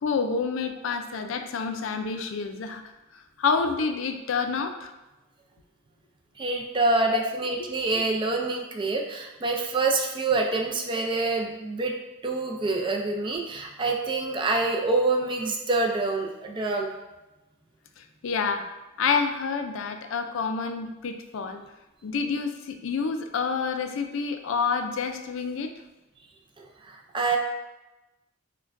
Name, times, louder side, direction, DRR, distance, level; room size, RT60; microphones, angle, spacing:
voice 1, 0.0-2.8 3.4-4.9 7.6-7.7 18.0-18.6 19.0-21.6 22.0-25.7, left 5 dB, 70° left, 7 dB, 0.4 m, -28 dB
voice 2, 6.4-11.9 12.2-16.9 26.6-27.4, right 3 dB, 25° right, 1 dB, 0.4 m, -26 dB
6.2 x 2.2 x 2.5 m, 1.0 s
head